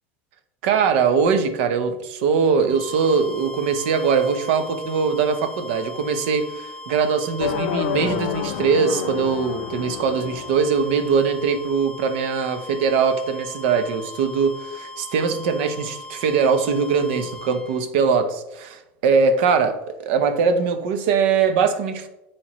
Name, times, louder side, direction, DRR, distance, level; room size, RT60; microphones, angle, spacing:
voice 1, 0.6-19.7 20.0-22.1, right 5 dB, 75° right, 10 dB, 0.7 m, -21 dB
sound 1, 2.5-17.8, left 1 dB, 5° left, 0.9 m, -39 dB
sound 2, 7.4-11.4, left 9 dB, 80° left, 0.4 m, -29 dB
9.6 x 3.2 x 3.0 m, 0.95 s
supercardioid pair, 105°, 6 cm